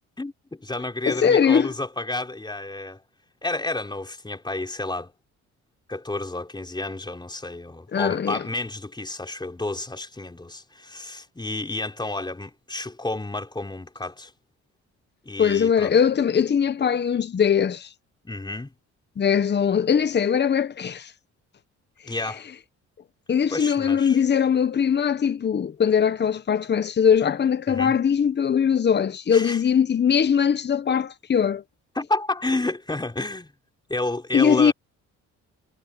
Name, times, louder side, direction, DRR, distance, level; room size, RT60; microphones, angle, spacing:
voice 1, 0.2-3.0 3.4-5.1 5.9-14.3 15.2-15.9 18.2-18.7 22.0-22.4 23.5-24.2 27.7-27.9 29.3-29.6 32.0-33.5 33.9-34.7, left 2 dB, 15° left, 4.1 m, -30 dB
voice 2, 1.1-1.7 7.9-8.4 15.4-17.9 19.2-21.1 23.3-31.6 34.3-34.7, left 7 dB, 35° left, 1.0 m, -21 dB
cardioid pair, 90°, 30 cm